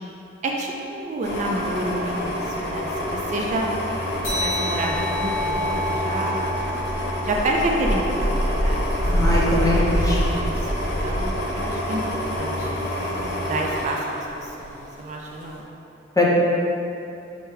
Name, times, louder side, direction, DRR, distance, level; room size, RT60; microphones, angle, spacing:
voice 1, 0.4-3.7 4.3-6.6 7.2-9.0 10.1-12.0 12.4-12.7 13.4-15.7, right 1 dB, 40° right, 0 dB, 0.3 m, -29 dB
sound 1, 1.2-14.9 15.3-15.5, equal, 65° left, 0.6 m, -26 dB
sound 2, 4.2-9.2, left 1 dB, 90° left, 1.3 m, -31 dB
voice 2, 9.1-10.2 16.2-16.3, left 2 dB, 20° left, -4 dB, 0.6 m, -21 dB
6.0 x 2.2 x 3.2 m, 2.8 s
head